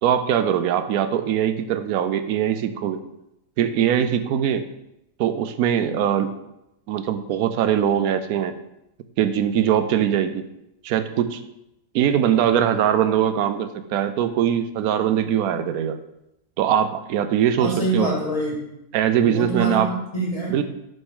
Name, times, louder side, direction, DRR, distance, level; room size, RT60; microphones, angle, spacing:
voice 1, 0.0-3.0 3.6-4.6 5.2-6.3 6.9-8.5 9.2-10.4 10.8-11.4 11.9-16.0 16.6-18.1 18.9-20.0 20.5-20.6, right 9 dB, 90° right, 10 dB, 1.1 m, -21 dB
voice 2, 17.6-18.7 19.2-20.6, right 2 dB, 25° left, -4 dB, 2.0 m, -25 dB
7.4 x 5.3 x 3.8 m, 0.85 s
omnidirectional pair, 1.5 m